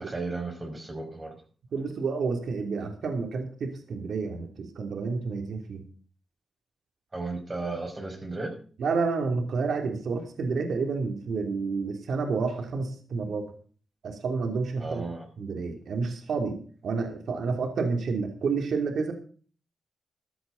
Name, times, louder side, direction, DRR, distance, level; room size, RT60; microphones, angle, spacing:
voice 1, 0.0-1.4 7.1-8.5 14.8-15.3, right 3 dB, 25° right, 4 dB, 5.9 m, -34 dB
voice 2, 1.7-5.8 8.8-13.5 14.0-15.0 15.4-19.1, right 4 dB, 75° right, 4 dB, 3.0 m, -30 dB
15.0 x 13.0 x 4.0 m, 0.42 s
cardioid pair, 90°, 0 cm